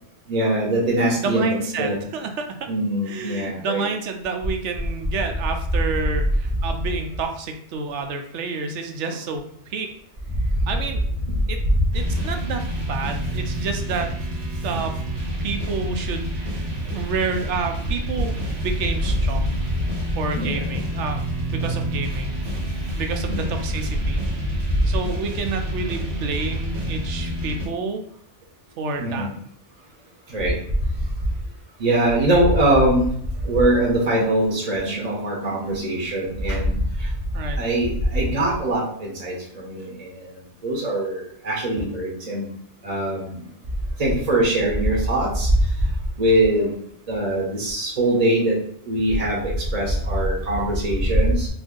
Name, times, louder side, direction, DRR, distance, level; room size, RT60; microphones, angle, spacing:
voice 1, 0.3-2.0 2.7-3.8 20.3-20.8 23.3-23.6 24.8-24.9 29.0-29.3 30.3-30.5 31.8-33.1 33.4-36.8 37.6-40.2 40.6-42.4 42.8-43.4 44.0-45.5 46.2-46.7 47.1-48.5 48.9-51.5, right 1 dB, 40° right, -4 dB, 0.8 m, -22 dB
voice 2, 1.2-2.7 3.1-9.9 10.7-11.0 11.5-11.6 11.9-14.1 14.6-14.9 15.4-19.5 20.2-22.3 23.0-24.2 24.8-28.0 28.8-29.3 37.3-37.6, right 4 dB, 80° right, 5 dB, 0.9 m, -29 dB
sound 1, 11.9-27.7, right 1 dB, 65° right, 1.3 m, -28 dB
2.6 x 2.5 x 3.7 m, 0.66 s
omnidirectional pair, 1.2 m